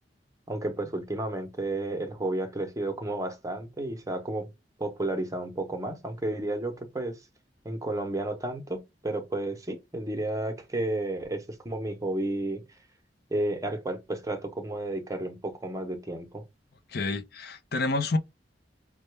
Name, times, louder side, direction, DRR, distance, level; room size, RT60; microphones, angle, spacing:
voice 1, 0.5-4.5 4.8-7.1 7.6-12.6 13.3-16.4, right 1 dB, 20° right, 0.8 m, -32 dB
voice 2, 16.9-18.2, left 3 dB, 60° left, 0.6 m, -28 dB
5.4 x 2.2 x 3.2 m
head